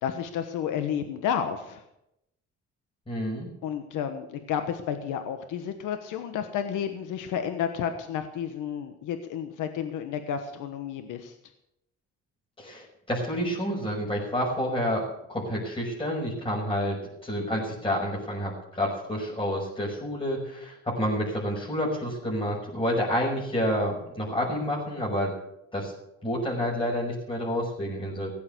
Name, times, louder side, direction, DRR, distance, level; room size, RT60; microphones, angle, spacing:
voice 1, 0.0-1.8 3.6-11.3, left 8 dB, 90° left, 8 dB, 1.3 m, -31 dB
voice 2, 3.1-3.5 12.6-15.0 15.3-25.3 25.7-25.9 26.2-28.3, equal, 20° left, -4 dB, 5.9 m, -29 dB
16.5 x 8.7 x 8.4 m, 0.82 s
cardioid pair, 90°, 30 cm